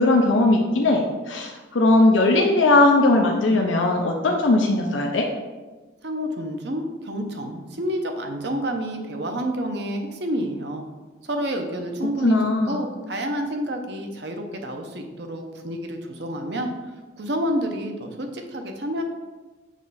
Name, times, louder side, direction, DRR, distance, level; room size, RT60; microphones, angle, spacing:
voice 1, 0.0-5.3 12.2-12.8, left 2 dB, 90° left, 1 dB, 0.6 m, -19 dB
voice 2, 6.0-10.8 11.3-12.3 12.7-16.7 17.2-19.0, equal, 60° right, 4 dB, 0.8 m, -29 dB
6.5 x 3.1 x 5.5 m, 1.3 s
head